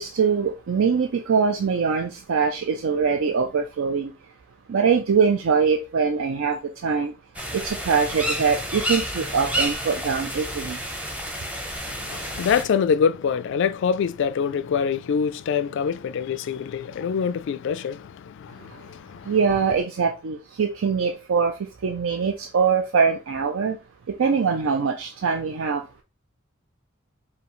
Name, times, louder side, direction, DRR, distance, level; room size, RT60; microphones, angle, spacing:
voice 1, 0.0-4.1 4.7-7.1 7.5-10.8 19.3-21.5 21.8-23.8 24.2-26.0, right 5 dB, 70° right, 0.4 m, -23 dB
sound 1, 7.3-12.6, equal, 5° right, 0.7 m, -30 dB
voice 2, 11.9-19.3, left 6 dB, 60° left, 0.3 m, -25 dB
4.9 x 2.7 x 3.0 m
head